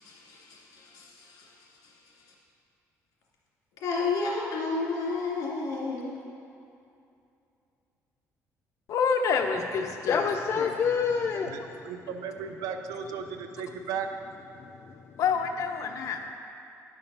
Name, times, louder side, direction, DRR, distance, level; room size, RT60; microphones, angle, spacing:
voice 1, 0.1-1.1 3.8-6.2, left 3 dB, 75° left, -3 dB, 2.4 m, -31 dB
voice 2, 8.9-10.2 10.6-10.7 15.2-16.3, left 5 dB, 60° left, 4 dB, 0.9 m, -27 dB
voice 3, 10.1-11.9 14.5-15.2, left 6 dB, 45° left, 3 dB, 0.5 m, -29 dB
voice 4, 11.8-14.1, right 7 dB, 85° right, 7 dB, 0.7 m, -35 dB
10.5 x 5.8 x 5.5 m, 2.6 s
cardioid pair, 120°, 6 cm